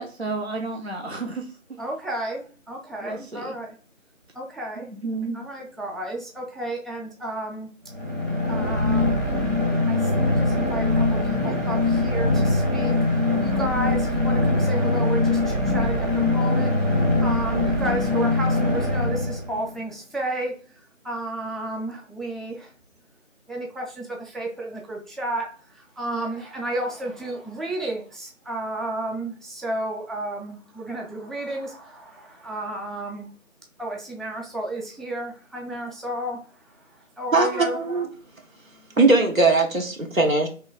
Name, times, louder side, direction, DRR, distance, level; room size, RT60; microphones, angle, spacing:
voice 1, 0.0-1.5 3.0-3.5 4.8-5.4, right 3 dB, 55° right, 0.5 m, -31 dB
voice 2, 1.8-3.7 4.3-4.9 5.3-7.7 8.5-9.1 9.9-13.0 13.4-16.7 17.2-22.7 23.5-33.3 33.8-37.8, right 1 dB, ahead, 0.5 m, -32 dB
sound 1, 7.9-19.8, left 2 dB, 70° right, 1.3 m, -22 dB
voice 3, 37.3-38.1 39.0-40.5, right 3 dB, 85° right, 1.1 m, -20 dB
3.0 x 2.6 x 3.8 m
figure-of-eight pair, 180°, 39 cm